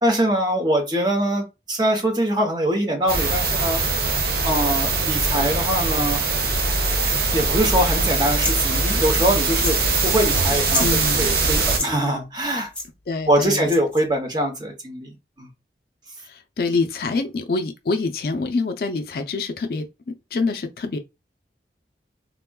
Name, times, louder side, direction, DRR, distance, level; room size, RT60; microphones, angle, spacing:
voice 1, 0.0-4.1 4.4-6.2 7.3-9.8 10.0-12.7 13.3-15.1 15.4-15.5, right 1 dB, 25° right, 0.7 m, -23 dB
sound 1, 3.1-11.8, right 3 dB, 55° right, 0.6 m, -22 dB
sound 2, 8.3-8.6 9.5-9.9 10.1-10.2 10.6-10.9 11.6-11.9 12.7-12.9 13.6-14.0, left 2 dB, 5° left, 0.6 m, -29 dB
voice 2, 10.8-11.2 13.1-13.7 16.2-19.9 20.3-21.0, left 3 dB, 55° left, 0.4 m, -25 dB
3.5 x 2.2 x 2.2 m
head